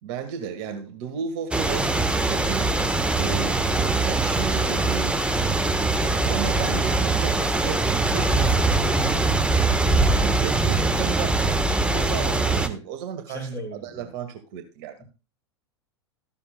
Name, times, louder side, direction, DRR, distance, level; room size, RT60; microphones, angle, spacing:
voice 1, 0.0-2.7 3.2-5.2 6.0-8.5 10.2-11.4 11.9-15.0, right 7 dB, 50° right, 7 dB, 2.0 m, -34 dB
sound 1, 1.5-12.7, right 3 dB, 5° right, 1.3 m, -22 dB
voice 2, 8.2-9.6 13.3-14.1 15.0-15.1, right 1 dB, 20° left, 2 dB, 6.9 m, -35 dB
14.5 x 12.5 x 2.2 m, 0.28 s
figure-of-eight pair, 90°, 14 cm